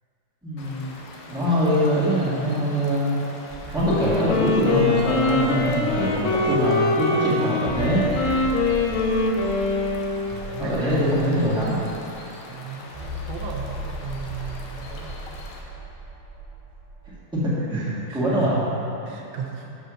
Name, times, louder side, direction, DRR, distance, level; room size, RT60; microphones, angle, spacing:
voice 1, 0.4-0.9 1.3-3.1 3.7-8.0 10.6-11.8 17.4-17.9 18.1-18.5, equal, ahead, -10 dB, 1.8 m, -23 dB
sound 1, 0.6-15.6, left 2 dB, 70° left, 1.5 m, -43 dB
sound 2, 3.5-6.8 7.1-7.2 7.6-12.1 12.9-17.2, right 1 dB, 45° right, 0.6 m, -37 dB
voice 2, 3.7-4.3 5.9-6.4 8.9-9.3 10.3-11.7 12.5-15.2 17.7-19.7, right 4 dB, 80° right, 0 dB, 1.5 m, -35 dB
Wind instrument woodwind instrument, 3.8-10.6, left 3 dB, 85° left, 1.6 m, -23 dB
6.7 x 5.4 x 6.3 m, 2.9 s
omnidirectional pair, 2.1 m